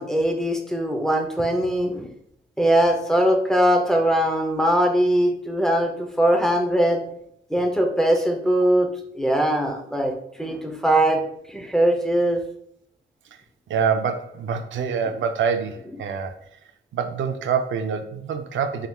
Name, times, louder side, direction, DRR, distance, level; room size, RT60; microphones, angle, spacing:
voice 1, 0.0-2.1 2.6-7.0 7.5-8.9 9.1-10.1 10.4-11.2 11.5-12.4, right 1 dB, 5° left, 2 dB, 0.6 m, -21 dB
voice 2, 13.7-16.3 16.9-18.9, right 6 dB, 85° right, 6 dB, 0.5 m, -25 dB
4.5 x 3.6 x 2.2 m, 0.71 s
wide cardioid pair, 130°, 19 cm